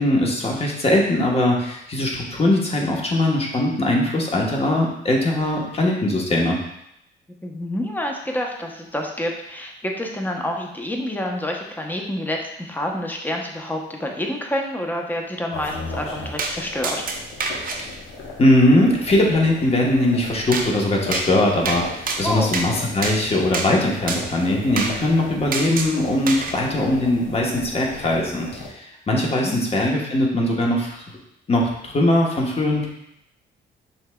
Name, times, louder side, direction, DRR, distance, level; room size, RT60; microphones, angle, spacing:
voice 1, 0.0-6.6 17.8-17.9 18.4-31.0 31.5-32.9, left 1 dB, 30° left, -1 dB, 1.0 m, -20 dB
voice 2, 7.4-17.0 22.2-22.5 29.4-29.6, left 1 dB, 10° left, 1 dB, 0.7 m, -28 dB
sound 1, 15.5-28.7, left 2 dB, 85° left, 1.0 m, -37 dB
sound 2, 16.4-16.5 16.8-17.8 20.5-20.7 21.1-21.3 21.6-21.8 22.1-22.7 23.0-23.2 23.5-23.7 24.1-24.2 24.8-24.9 25.5-25.9 26.3-26.5, right 4 dB, 45° right, 0.6 m, -26 dB
5.6 x 3.4 x 2.2 m, 0.79 s
cardioid pair, 90°, 20 cm